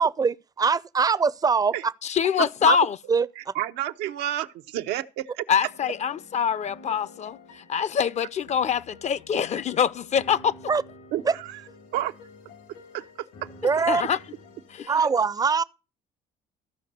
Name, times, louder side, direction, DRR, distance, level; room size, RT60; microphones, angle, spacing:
voice 1, 0.0-1.9 2.6-2.8 3.1-3.5 10.7-10.8 11.3-11.4 13.6-14.0 14.9-15.6, right 5 dB, 20° right, 0.5 m, -23 dB
voice 2, 2.0-3.0 5.5-10.5 13.9-14.2 14.7-14.9, left 7 dB, 40° left, 0.6 m, -24 dB
voice 3, 3.4-5.1 5.4-5.5 11.1-11.6 11.9-12.1 12.9-13.5, right 13 dB, 85° right, 0.8 m, -30 dB
sound 1, 5.6-14.9, left 3 dB, 85° left, 2.4 m, -49 dB
14.5 x 5.3 x 6.7 m
cardioid pair, 110°, 17 cm